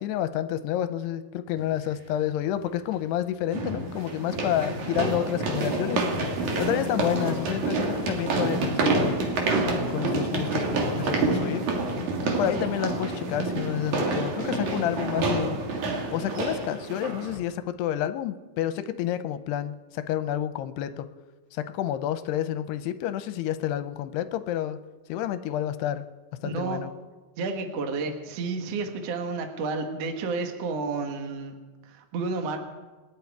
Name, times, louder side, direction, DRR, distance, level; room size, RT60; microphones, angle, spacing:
voice 1, 0.0-6.0 6.6-9.3 9.9-11.7 12.4-15.6 16.1-21.1 21.5-24.8 25.1-26.1 26.4-26.9, left 11 dB, 80° left, 11 dB, 2.6 m, -29 dB
sound 1, 1.6-1.7 3.5-17.4, right 3 dB, 50° right, 2.7 m, -28 dB
voice 2, 26.4-26.8 27.4-31.5 31.8-32.6, right 4 dB, 70° right, 4 dB, 1.5 m, -31 dB
28.5 x 9.5 x 4.7 m, 1.3 s
omnidirectional pair, 5.1 m